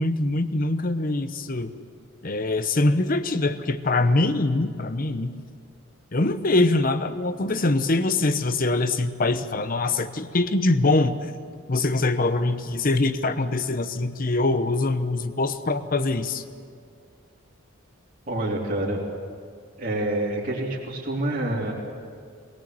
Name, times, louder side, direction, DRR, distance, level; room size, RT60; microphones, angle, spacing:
voice 1, 0.0-1.7 2.2-5.3 6.1-11.3 11.7-16.4, left 2 dB, 40° left, 11 dB, 0.9 m, -23 dB
voice 2, 18.3-19.0 19.8-21.7, right 1 dB, 40° right, -5 dB, 3.2 m, -27 dB
21.5 x 18.0 x 7.7 m, 2.2 s
head